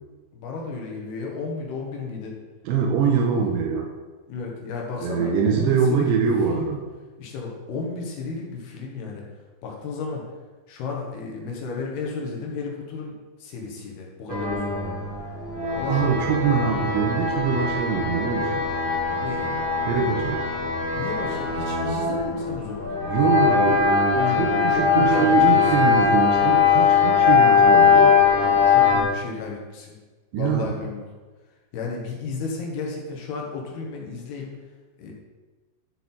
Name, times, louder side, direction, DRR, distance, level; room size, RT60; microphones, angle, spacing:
voice 1, 0.3-2.3 3.1-3.5 4.3-6.7 7.2-9.2 9.6-10.2 10.7-13.1 13.4-15.0 15.7-16.3 19.2-19.5 21.0-23.1 24.1-25.9 28.4-30.0 30.4-31.1 31.7-34.5 35.0-35.1, left 4 dB, 70° left, -1 dB, 3.2 m, -33 dB
voice 2, 2.6-3.9 5.0-6.8 15.9-18.6 19.8-20.4 23.1-28.2 30.3-30.8, right 6 dB, 85° right, 0 dB, 3.3 m, -23 dB
sound 1, 14.3-29.0, left 6 dB, 45° right, 1.8 m, -21 dB
11.5 x 6.5 x 4.0 m, 1.3 s
omnidirectional pair, 5.2 m